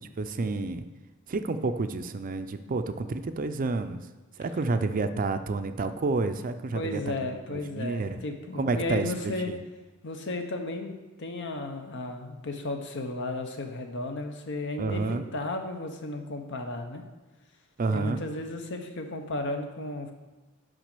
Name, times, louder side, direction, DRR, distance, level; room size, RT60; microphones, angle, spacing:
voice 1, 0.2-0.8 1.3-4.1 4.4-8.2 8.6-9.6 14.8-15.2 17.8-18.2, right 3 dB, 40° right, 9 dB, 0.5 m, -30 dB
voice 2, 6.7-9.5 10.0-17.0 17.9-20.1, left 2 dB, 60° left, 5 dB, 0.9 m, -34 dB
6.2 x 5.2 x 6.7 m, 1.2 s
head